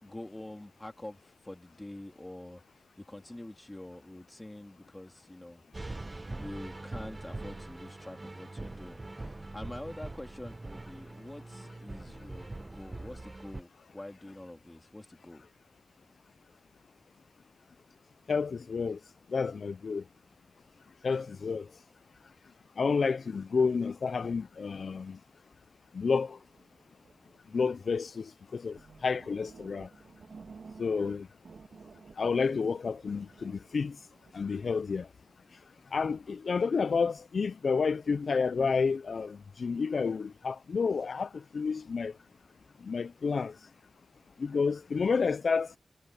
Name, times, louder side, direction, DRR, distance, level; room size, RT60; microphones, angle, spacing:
voice 1, 0.0-2.6 3.0-5.6 6.3-15.5, left 1 dB, 15° left, 3.1 m, -46 dB
sound 1, 5.7-13.6, right 2 dB, 20° right, 0.8 m, -43 dB
voice 2, 18.3-19.0 19.3-20.0 21.0-21.7 22.8-25.2 25.9-26.4 27.5-29.9 30.8-31.3 32.2-34.0 34.3-35.1 35.9-42.1 42.8-43.6 44.4-45.7, left 5 dB, 55° left, 0.3 m, -30 dB
sound 2, 26.3-27.9 28.4-28.5 28.7-31.2 31.4-34.5, right 5 dB, 60° right, 2.2 m, -53 dB
wide cardioid pair, 180°, 0 cm